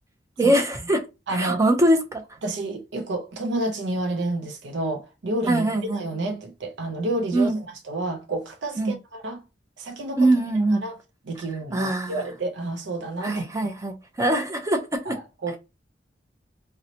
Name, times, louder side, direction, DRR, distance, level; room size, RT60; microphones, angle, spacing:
voice 1, 0.4-1.0 1.3-2.2 5.5-6.0 7.3-7.6 8.8-8.9 10.2-10.8 11.7-12.2 13.2-14.8 15.0-15.2, right 1 dB, 20° right, 0.5 m, -22 dB
voice 2, 1.3-1.6 2.4-5.6 5.9-9.4 9.8-10.3 10.5-11.0 11.3-13.4 15.1-15.6, right 2 dB, 80° right, 0.5 m, -30 dB
3.9 x 2.1 x 2.8 m
head